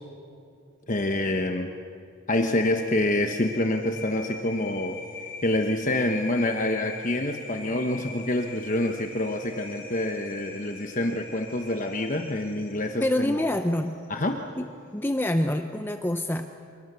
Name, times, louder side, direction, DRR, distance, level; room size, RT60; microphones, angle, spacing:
voice 1, 0.9-1.7 2.3-5.0 5.4-13.3 14.1-14.4, left 1 dB, 40° left, 4 dB, 1.1 m, -27 dB
sound 1, 2.3-14.4, left 4 dB, 60° left, 3.3 m, -43 dB
voice 2, 13.0-14.0 14.6-14.7 14.9-16.5, left 1 dB, 10° left, 7 dB, 0.6 m, -26 dB
26.5 x 22.5 x 6.9 m, 2.5 s
head